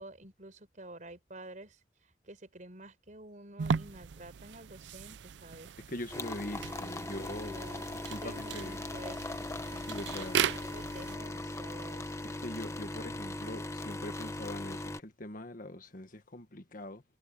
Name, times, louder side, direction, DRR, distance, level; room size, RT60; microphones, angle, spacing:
voice 1, 0.0-5.8 6.7-12.2, right 1 dB, 45° right, 4.4 m, -50 dB
sound 1, 3.6-11.2, right 7 dB, 85° right, 0.4 m, -37 dB
voice 2, 5.9-7.6 8.1-8.8 9.9-10.4 12.4-17.0, left 1 dB, 50° left, 1.6 m, -42 dB
sound 2, 6.1-15.0, left 2 dB, 15° left, 1.0 m, -39 dB
head